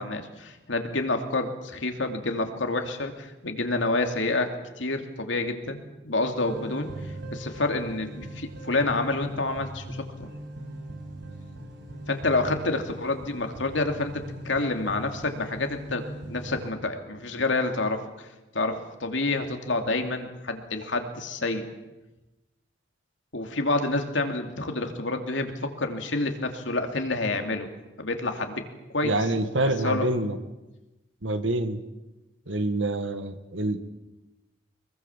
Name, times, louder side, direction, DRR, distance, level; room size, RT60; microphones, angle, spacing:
voice 1, 0.0-5.8 6.0-6.9 7.3-10.3 12.1-18.3 18.5-21.7 23.3-27.7 28.0-28.6 28.9-29.2 29.8-30.1, left 2 dB, 80° left, 5 dB, 2.9 m, -28 dB
sound 1, 6.4-16.7, right 1 dB, 60° right, 6.4 m, -40 dB
voice 2, 29.0-30.4 31.2-31.8 32.5-33.8, right 2 dB, 85° right, 10 dB, 1.9 m, -26 dB
24.0 x 21.5 x 7.4 m, 1.0 s
head